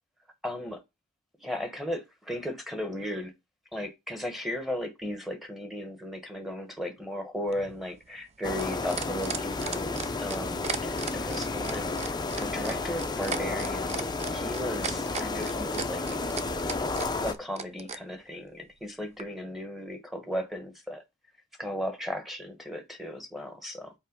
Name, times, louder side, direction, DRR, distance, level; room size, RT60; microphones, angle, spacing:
voice 1, 0.4-0.8 1.4-3.3 3.7-14.0 14.3-16.0 17.2-21.0 21.6-23.9, equal, ahead, 1.1 m, -36 dB
sound 1, 7.5-18.0 19.2-19.3, right 6 dB, 30° right, 0.5 m, -35 dB
sound 2, 8.4-17.3, left 3 dB, 20° left, 0.6 m, -32 dB
5.4 x 4.5 x 5.2 m
head